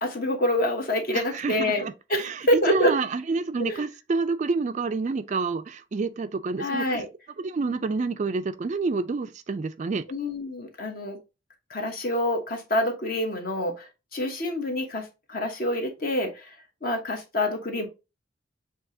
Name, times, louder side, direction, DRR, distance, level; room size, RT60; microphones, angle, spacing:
voice 1, 0.0-2.9 3.6-3.8 6.6-7.1 10.1-11.2 11.7-16.6 16.8-17.9, left 1 dB, 45° left, 1.1 m, -27 dB
voice 2, 1.1-7.0 7.4-10.0, right 4 dB, 40° right, 0.3 m, -28 dB
6.9 x 2.8 x 2.6 m
head